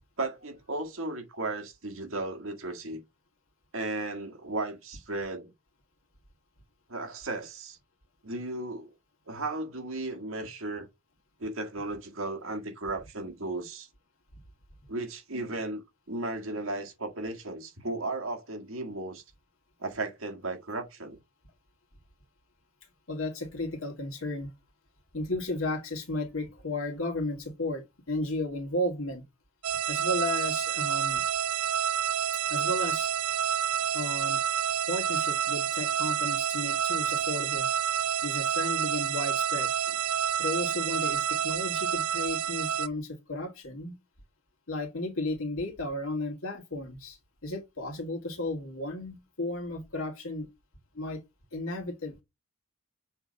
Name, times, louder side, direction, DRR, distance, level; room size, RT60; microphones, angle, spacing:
voice 1, 0.2-3.0 3.7-5.5 6.9-7.8 8.2-8.9 9.3-10.9 11.4-13.9 14.9-15.8 16.1-19.2 19.8-21.2, right 2 dB, 65° right, 1.9 m, -35 dB
voice 2, 23.1-24.5 25.1-29.2 29.9-31.2 32.5-33.1 33.9-34.4 34.9-37.7 38.2-40.0 40.4-44.0 44.7-50.5 50.9-51.2 51.5-52.2, left 1 dB, 65° left, 2.0 m, -34 dB
sound 1, 29.6-42.9, right 9 dB, 85° right, 0.5 m, -29 dB
7.1 x 3.4 x 5.2 m
head